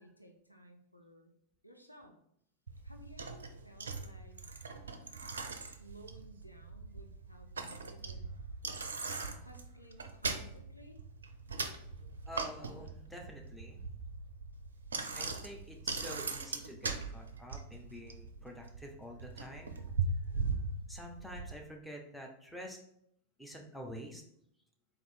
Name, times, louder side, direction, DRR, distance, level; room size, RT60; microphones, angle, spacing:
voice 1, 0.0-1.3 1.6-2.1 2.8-4.4 5.3-8.3 9.4-11.0, right 1 dB, 90° left, 3 dB, 0.6 m, -56 dB
Bicycle, 2.7-21.5, right 4 dB, 70° right, 0.4 m, -40 dB
voice 2, 12.3-13.8 15.1-19.9 20.9-22.8 23.4-24.2, equal, ahead, 0 dB, 0.7 m, -48 dB
4.1 x 2.6 x 4.5 m, 0.71 s
figure-of-eight pair, 90°, 0 cm